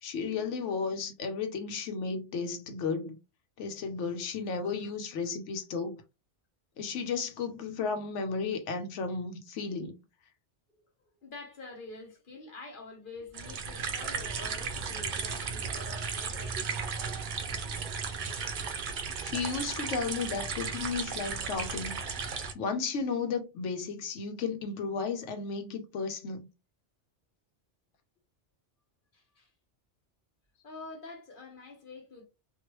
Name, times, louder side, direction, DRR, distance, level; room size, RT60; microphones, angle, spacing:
voice 1, 0.0-3.2 3.6-6.0 6.8-9.9 19.2-22.0 22.5-26.5, left 5 dB, 85° left, 1.0 m, -34 dB
voice 2, 11.2-17.0 29.1-29.5 30.6-32.2, left 3 dB, 50° left, 1.0 m, -46 dB
sound 1, 13.3-22.5, right 5 dB, 55° right, 0.6 m, -35 dB
2.9 x 2.6 x 3.0 m
omnidirectional pair, 1.2 m